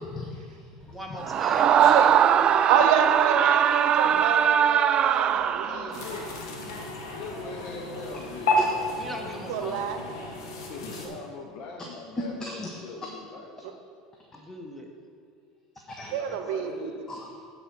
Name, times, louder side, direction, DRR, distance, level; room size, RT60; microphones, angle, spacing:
voice 1, 0.0-0.7 1.1-1.2 1.8-1.9 8.6-8.7 9.0-9.1 12.4-12.7 15.9-16.1 17.1-17.4, left 2 dB, 25° left, -1 dB, 1.0 m, -38 dB
voice 2, 0.9-1.8 9.0-9.8 14.3-14.9, equal, 5° left, 1 dB, 1.3 m, -39 dB
Screaming, 1.2-6.1, right 8 dB, 40° right, 0.3 m, -21 dB
voice 3, 1.8-2.2 2.7-5.8 9.5-10.0 11.1-11.2 16.1-16.9, right 8 dB, 75° right, 7 dB, 0.7 m, -27 dB
voice 4, 5.7-6.4 7.1-8.6 10.6-13.5 16.0-17.0, left 4 dB, 60° left, 1 dB, 0.8 m, -41 dB
sound 1, 5.9-11.1, left 1 dB, 85° left, 1.3 m, -31 dB
9.4 x 4.3 x 6.0 m, 2.2 s
supercardioid pair, 95°, 2 cm